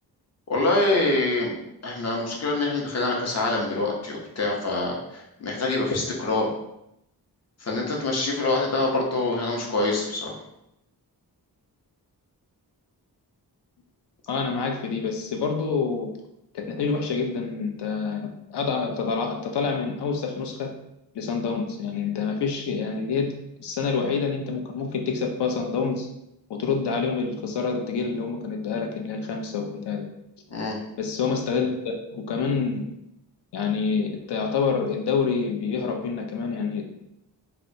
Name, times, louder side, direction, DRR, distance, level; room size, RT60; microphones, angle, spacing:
voice 1, 0.5-1.5 1.8-6.5 7.6-10.4 30.5-30.8, left 2 dB, 40° left, -1 dB, 0.6 m, -25 dB
voice 2, 14.3-16.1 16.5-20.7 21.1-23.3 23.6-26.1 26.5-30.0 31.0-32.9 33.5-36.8, left 5 dB, 85° left, 3 dB, 0.5 m, -27 dB
2.7 x 2.1 x 2.6 m, 0.82 s
wide cardioid pair, 100°, 39 cm